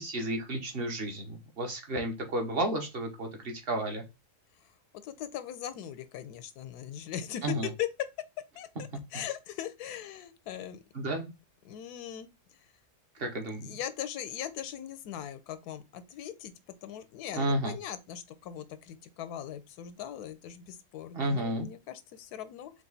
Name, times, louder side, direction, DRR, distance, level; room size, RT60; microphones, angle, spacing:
voice 1, 0.0-4.0 7.4-7.7 10.9-11.3 13.2-13.8 17.3-17.7 21.1-21.7, right 1 dB, 45° right, 1.1 m, -32 dB
voice 2, 5.0-8.1 8.6-10.8 11.6-12.3 13.5-16.5 16.8-22.7, left 10 dB, 90° left, 1.1 m, -39 dB
4.8 x 2.5 x 3.9 m
omnidirectional pair, 1.6 m